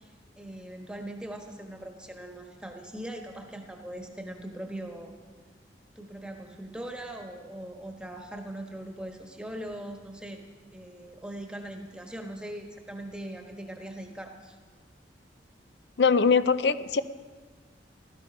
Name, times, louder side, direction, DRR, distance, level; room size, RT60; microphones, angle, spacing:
voice 1, 0.0-5.1 5.9-10.4 10.7-14.6, right 1 dB, 5° right, 3 dB, 1.3 m, -40 dB
voice 2, 16.0-17.0, left 5 dB, 65° left, 14 dB, 0.6 m, -22 dB
17.0 x 13.0 x 5.3 m, 1.4 s
head